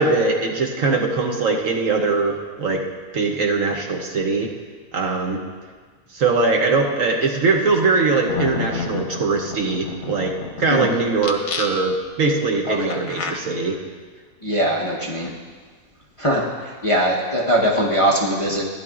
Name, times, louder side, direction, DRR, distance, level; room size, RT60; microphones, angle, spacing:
voice 1, 0.0-2.8 3.1-4.5 4.9-5.4 6.1-10.3 10.6-13.8, right 3 dB, 60° right, 1 dB, 1.1 m, -21 dB
sound 1, 8.0-8.1 8.3-10.7 11.2-12.1 12.9-13.3, left 5 dB, 80° left, 1.5 m, -29 dB
voice 2, 12.7-13.0 14.4-15.3 16.2-16.4 16.8-18.6, equal, 25° left, -4 dB, 0.9 m, -21 dB
15.0 x 11.0 x 2.4 m, 1.5 s
omnidirectional pair, 1.7 m